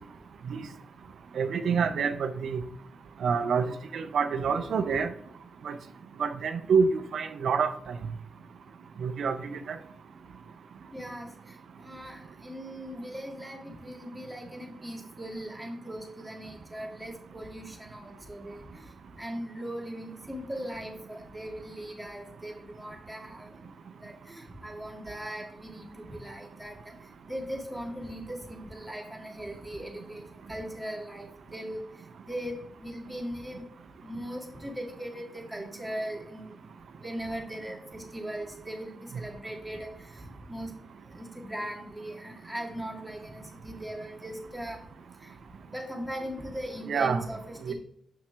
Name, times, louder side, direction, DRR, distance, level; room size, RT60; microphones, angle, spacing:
voice 1, 1.4-2.6 3.2-5.1 5.6-5.8 6.2-7.9 9.0-9.8 46.9-47.2 47.7-47.8, right 5 dB, 75° right, 9 dB, 0.4 m, -27 dB
voice 2, 10.9-11.3 11.8-18.6 19.2-23.5 24.0-26.8 27.3-30.2 30.5-31.8 32.3-33.7 34.0-36.5 37.0-39.9 40.5-40.7 41.2-44.8 45.7-47.7, equal, ahead, -1 dB, 1.8 m, -39 dB
6.9 x 5.7 x 3.3 m, 0.72 s
cardioid pair, 100°, 0 cm